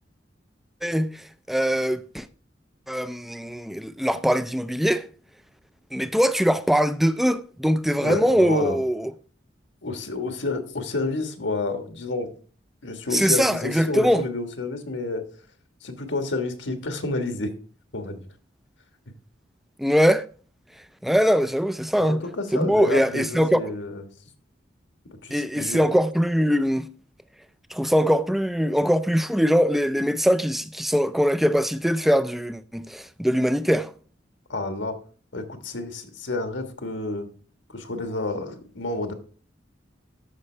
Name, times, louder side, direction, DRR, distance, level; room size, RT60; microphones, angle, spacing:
voice 1, 0.8-2.3 2.9-5.1 5.9-9.1 13.1-14.2 19.8-20.3 21.0-22.2 22.5-23.6 25.3-26.9 27.7-33.9, equal, ahead, 0.3 m, -22 dB
voice 2, 8.0-8.8 9.8-12.3 12.8-15.2 15.8-17.5 17.9-18.2 22.0-24.0 25.2-25.8 34.5-35.0 35.3-37.3 37.7-39.1, left 2 dB, 90° left, 1.4 m, -29 dB
13.5 x 5.4 x 3.2 m
head